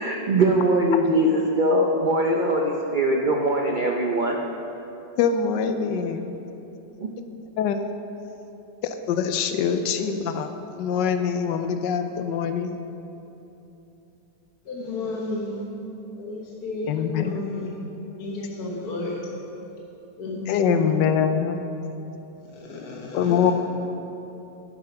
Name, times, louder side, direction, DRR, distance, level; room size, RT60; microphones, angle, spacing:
voice 1, 0.0-4.4 7.0-7.1, right 1 dB, 85° right, 0 dB, 0.4 m, -21 dB
voice 2, 5.2-6.3 7.6-7.8 8.8-12.8 16.9-17.3 20.5-21.6 23.1-23.5, left 7 dB, 85° left, 8 dB, 1.3 m, -24 dB
voice 3, 14.7-15.6 16.2-17.7 18.2-19.2 20.2-21.0 22.7-23.3, left 2 dB, 60° left, -3 dB, 1.6 m, -32 dB
10.0 x 8.1 x 5.8 m, 3.0 s
omnidirectional pair, 1.9 m